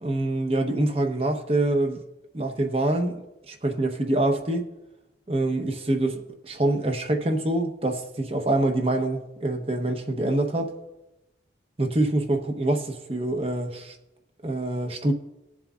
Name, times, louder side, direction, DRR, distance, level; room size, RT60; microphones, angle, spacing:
voice 1, 0.0-2.0 2.3-4.7 5.3-10.7 11.8-14.0 14.4-15.1, right 1 dB, 30° right, 4 dB, 1.0 m, -25 dB
19.5 x 7.4 x 2.5 m, 0.96 s
head